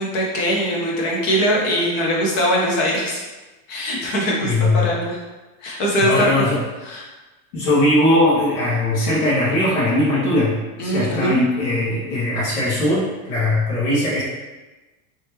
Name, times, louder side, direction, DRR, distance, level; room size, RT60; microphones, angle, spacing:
voice 1, 0.0-3.2 3.7-5.2 5.6-6.3 6.8-7.0 10.8-11.4, equal, 25° left, -2 dB, 0.4 m, -21 dB
voice 2, 4.4-4.9 6.0-6.6 7.5-14.2, left 1 dB, 55° left, -9 dB, 1.4 m, -19 dB
3.1 x 3.0 x 3.3 m, 1.2 s
supercardioid pair, 170°, 45 cm